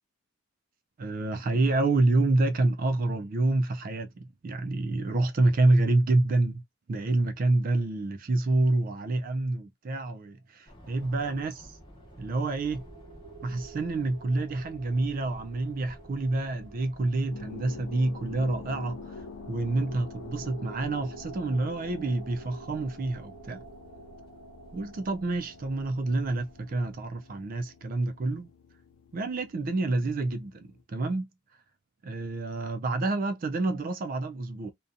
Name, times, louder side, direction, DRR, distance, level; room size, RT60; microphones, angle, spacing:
voice 1, 1.0-6.6 6.9-10.6 10.9-11.8 12.2-12.8 13.4-19.2 19.5-23.6 24.7-28.5 29.1-31.3 32.0-34.7, right 2 dB, 40° right, 0.3 m, -28 dB
sound 1, 10.7-26.9, equal, 20° left, 0.7 m, -52 dB
sound 2, 11.4-28.0, right 5 dB, 90° right, 0.6 m, -51 dB
sound 3, 17.3-30.8, left 4 dB, 70° left, 0.3 m, -47 dB
2.6 x 2.2 x 2.4 m
head